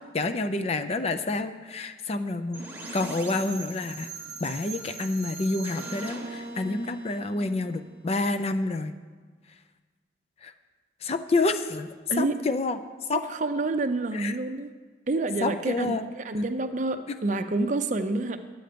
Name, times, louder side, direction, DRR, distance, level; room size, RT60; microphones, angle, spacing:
voice 1, 0.0-2.6 2.9-4.1 4.4-8.9 10.4-10.5 11.0-11.9 12.2-12.8 13.1-13.2 14.1-14.3 15.4-16.0 17.1-17.2, left 3 dB, 35° left, 9 dB, 0.4 m, -28 dB
sound 1, 2.5-8.3, right 3 dB, 15° right, 1.1 m, -40 dB
voice 2, 13.1-14.7 15.1-18.4, right 2 dB, 45° right, 9 dB, 0.5 m, -28 dB
10.5 x 7.7 x 5.1 m, 1.4 s
head